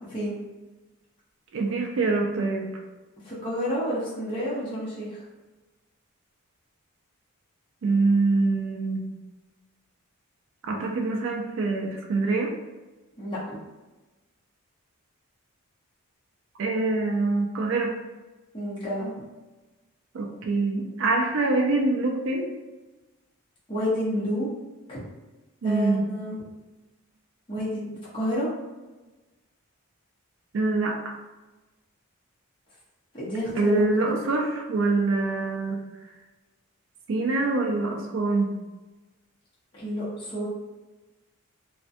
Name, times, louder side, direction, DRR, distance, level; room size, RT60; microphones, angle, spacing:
voice 1, 0.1-0.4 3.2-5.2 13.2-13.4 18.5-19.1 23.7-24.5 24.9-25.0 25.6-26.4 27.5-27.9 28.1-28.5 33.1-34.2 39.7-40.4, equal, 25° left, -9 dB, 0.6 m, -29 dB
voice 2, 1.5-2.7 7.8-9.1 10.7-12.5 16.6-17.9 20.1-22.5 25.6-26.1 30.5-31.2 33.6-35.8 37.1-38.5, right 3 dB, 60° right, 1 dB, 0.3 m, -25 dB
2.5 x 2.1 x 2.5 m, 1.2 s
head